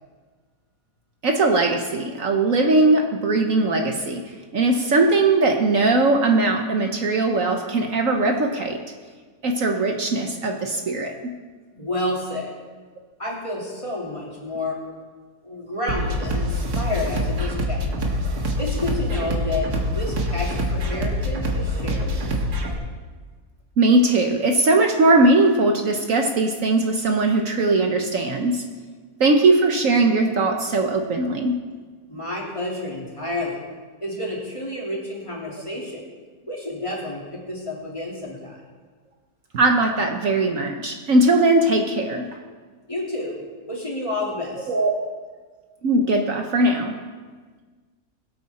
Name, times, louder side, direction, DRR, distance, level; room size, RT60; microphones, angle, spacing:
voice 1, 1.2-4.2 4.5-8.8 9.4-11.3 23.8-28.6 29.2-31.5 39.5-42.3 44.7-45.0 45.8-46.9, right 2 dB, 60° right, 3 dB, 1.3 m, -20 dB
voice 2, 11.7-12.5 13.2-14.8 15.4-17.9 18.6-22.1 32.1-33.6 34.0-36.0 36.5-38.6 42.9-43.4 43.7-44.7, left 1 dB, 20° left, -4 dB, 2.9 m, -30 dB
sound 1, 15.9-22.7, equal, 85° right, 2.0 m, -25 dB
21.5 x 8.5 x 4.3 m, 1.5 s
omnidirectional pair, 1.6 m